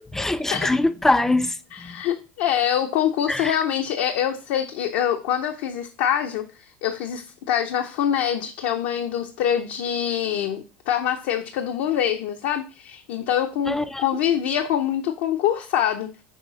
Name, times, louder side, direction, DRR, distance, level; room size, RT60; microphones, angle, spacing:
voice 1, 0.1-2.0 3.3-3.6 13.7-14.0, left 2 dB, 5° left, 0.4 m, -23 dB
voice 2, 1.7-16.2, left 10 dB, 65° left, 0.6 m, -25 dB
6.4 x 4.1 x 3.9 m
supercardioid pair, 130°, 7 cm